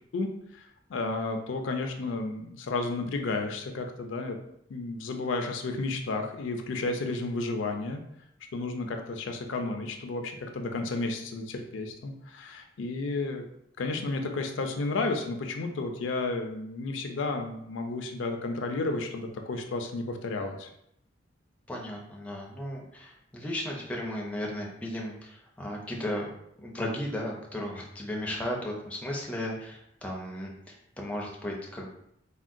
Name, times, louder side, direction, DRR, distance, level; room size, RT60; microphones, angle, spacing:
voice 1, 0.1-4.4 4.7-8.0 8.5-13.4 13.8-20.7, left 3 dB, 70° left, 4 dB, 0.4 m, -32 dB
voice 2, 21.7-26.3 26.6-31.9, left 1 dB, 5° left, -2 dB, 0.4 m, -35 dB
3.5 x 2.2 x 2.5 m, 0.75 s
head